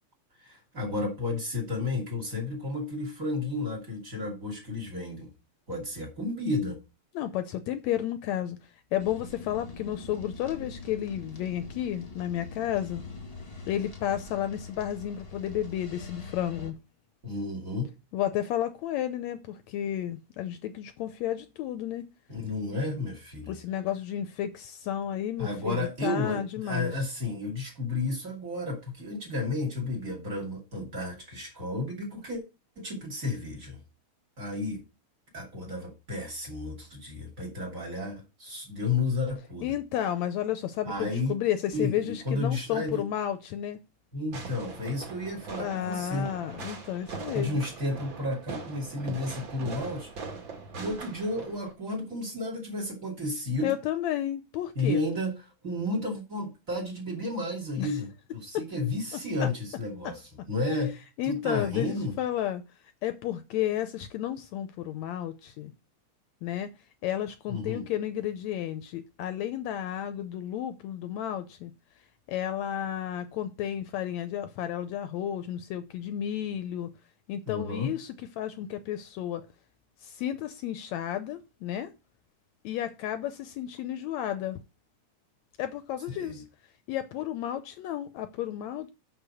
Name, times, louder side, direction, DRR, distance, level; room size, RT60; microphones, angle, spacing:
voice 1, 0.4-5.3 5.7-6.8 17.2-17.9 22.3-23.5 25.4-32.4 32.8-33.8 34.4-34.8 35.3-39.8 40.8-41.3 41.7-43.1 44.1-46.3 47.3-50.1 50.8-53.7 54.8-55.3 55.6-60.2 60.5-61.0 61.2-62.1 67.5-67.9 77.5-77.9 86.1-86.4, left 2 dB, 30° right, 2.7 m, -32 dB
voice 2, 7.2-8.6 8.9-13.0 13.7-16.8 18.1-22.1 23.5-26.9 39.6-43.8 45.6-47.7 53.6-55.0 57.8-58.0 59.4-59.5 60.0-60.1 61.2-62.6 63.0-65.7 66.4-66.7 67.0-71.7 72.3-76.9 77.3-79.5 80.0-81.9 82.6-84.6 85.6-86.4 86.9-88.9, left 11 dB, 75° left, 1.8 m, -32 dB
sound 1, 9.0-16.7, left 3 dB, 25° left, 1.4 m, -43 dB
Fireworks, 44.3-51.7, right 4 dB, 45° right, 2.3 m, -41 dB
6.6 x 5.7 x 7.0 m
omnidirectional pair, 3.5 m